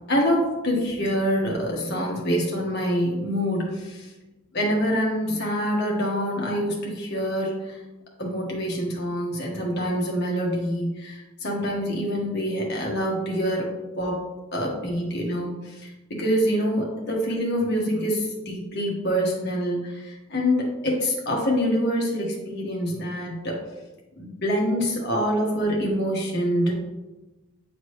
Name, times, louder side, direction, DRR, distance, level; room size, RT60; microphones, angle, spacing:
voice 1, 0.1-4.1 4.5-7.8 8.2-13.7 14.0-14.2 14.5-23.6 24.2-26.7, equal, 50° left, -2 dB, 1.4 m, -25 dB
8.6 x 3.9 x 3.2 m, 1.1 s
head